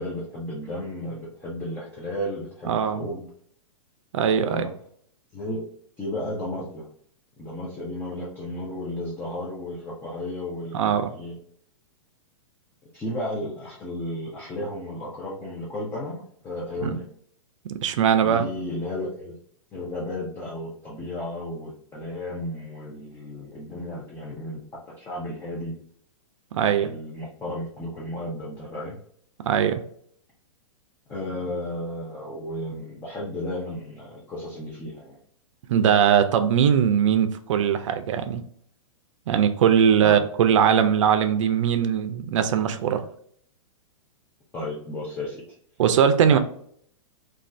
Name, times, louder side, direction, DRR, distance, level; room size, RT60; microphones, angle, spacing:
voice 1, 0.0-3.3 4.5-4.7 5.3-5.6 6.0-6.9 7.4-11.3 12.9-17.1 18.2-19.3 19.7-24.6 25.0-25.7 26.8-29.0 31.1-35.2 40.0-40.2 44.5-45.4 46.3-46.4, left 1 dB, 10° left, -4 dB, 0.5 m, -33 dB
voice 2, 2.7-3.0 4.1-4.6 10.7-11.1 16.8-16.9 17.8-18.4 26.5-26.9 29.5-29.8 35.7-38.4 39.3-43.0 45.8-46.4, right 8 dB, 65° right, 8 dB, 0.4 m, -20 dB
2.5 x 2.3 x 3.2 m, 0.64 s
hypercardioid pair, 140°, 17 cm